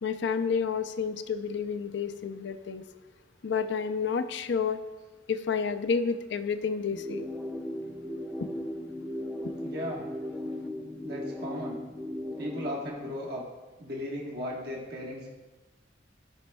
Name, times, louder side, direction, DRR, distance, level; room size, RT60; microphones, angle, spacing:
voice 1, 0.0-2.8 3.4-4.8 5.3-7.2 8.4-8.5, left 6 dB, 65° left, 10 dB, 0.5 m, -30 dB
sound 1, 6.9-12.9, left 1 dB, ahead, 0.4 m, -37 dB
voice 2, 9.6-10.1 11.0-11.8 12.4-13.4 13.8-15.4, equal, 55° right, -3 dB, 1.4 m, -36 dB
15.0 x 5.3 x 2.3 m, 1.2 s
head